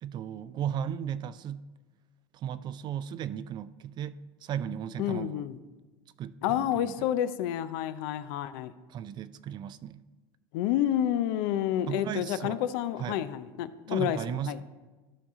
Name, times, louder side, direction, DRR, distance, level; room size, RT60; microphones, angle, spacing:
voice 1, 0.0-1.7 2.3-5.4 6.2-7.0 8.9-10.0 11.9-12.6 13.0-13.2 13.9-14.6, right 9 dB, 35° right, 0.4 m, -36 dB
voice 2, 5.0-5.6 6.4-8.7 10.5-14.2 14.4-14.6, left 11 dB, 65° left, 0.6 m, -29 dB
13.5 x 5.6 x 3.7 m
supercardioid pair, 110°, 12 cm